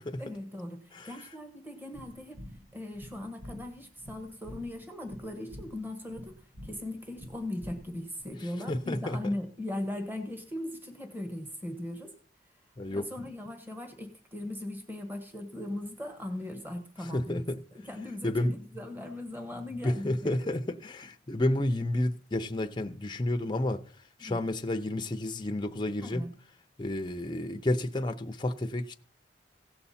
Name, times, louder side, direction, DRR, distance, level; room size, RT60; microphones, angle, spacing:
voice 1, 0.2-2.4 2.7-12.1 12.9-17.5 17.7-20.4 24.2-24.4 26.0-26.3, left 1 dB, 10° right, 1.4 m, -39 dB
sound 1, 1.9-8.2, equal, 35° right, 1.3 m, -48 dB
voice 2, 8.7-9.2 12.8-13.1 17.1-17.6 18.2-18.6 19.8-23.8 24.2-26.2 26.8-28.9, left 1 dB, 25° left, 0.6 m, -30 dB
16.5 x 6.8 x 4.2 m
head